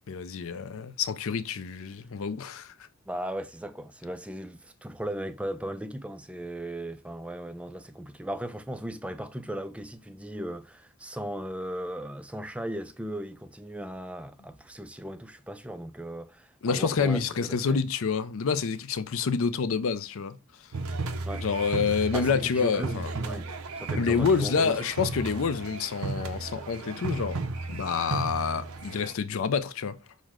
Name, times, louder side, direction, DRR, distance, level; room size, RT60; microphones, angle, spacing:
voice 1, 0.1-2.7 16.6-20.4 21.4-23.1 24.0-27.4 27.7-30.0, left 5 dB, 70° left, 0.5 m, -28 dB
voice 2, 3.1-17.8 21.2-21.5 22.1-25.1, right 1 dB, 5° right, 0.3 m, -37 dB
sound 1, 20.7-29.1, right 3 dB, 85° right, 0.6 m, -34 dB
6.3 x 2.1 x 3.6 m
head